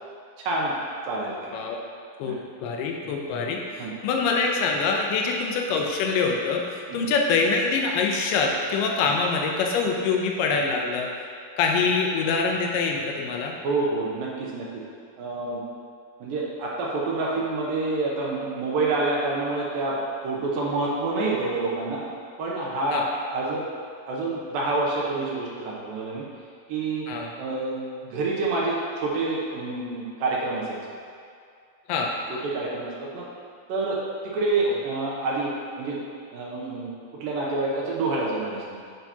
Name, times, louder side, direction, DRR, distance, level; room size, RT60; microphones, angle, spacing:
voice 1, 0.4-0.8 1.1-1.5 2.2-2.4 3.8-3.9 6.9-7.1 13.6-14.8 15.2-15.6 16.2-20.0 20.2-22.0 22.4-23.6 24.1-26.3 26.7-27.1 27.4-27.8 28.0-30.8 32.3-33.3 33.7-34.0 34.2-36.0 36.3-36.9 37.2-38.8, right 2 dB, 75° right, -4 dB, 2.5 m, -27 dB
voice 2, 2.2-11.1 11.6-13.5 22.9-23.0 27.1-27.3 31.9-32.1 34.7-34.8, left 4 dB, 80° left, 1 dB, 2.2 m, -25 dB
9.1 x 5.6 x 2.9 m, 2.4 s
omnidirectional pair, 4.3 m